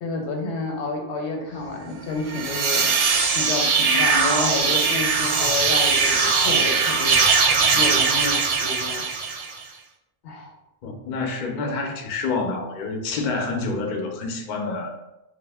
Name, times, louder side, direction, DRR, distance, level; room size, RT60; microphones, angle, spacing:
voice 1, 0.0-2.9 3.3-7.2 7.7-9.0 10.2-10.5, left 3 dB, 90° left, 1 dB, 0.9 m, -29 dB
sound 1, 2.2-9.6, right 5 dB, 65° right, 0.7 m, -20 dB
voice 2, 10.8-14.9, left 3 dB, 60° left, 3 dB, 0.5 m, -28 dB
2.4 x 2.1 x 3.4 m, 0.90 s
omnidirectional pair, 1.1 m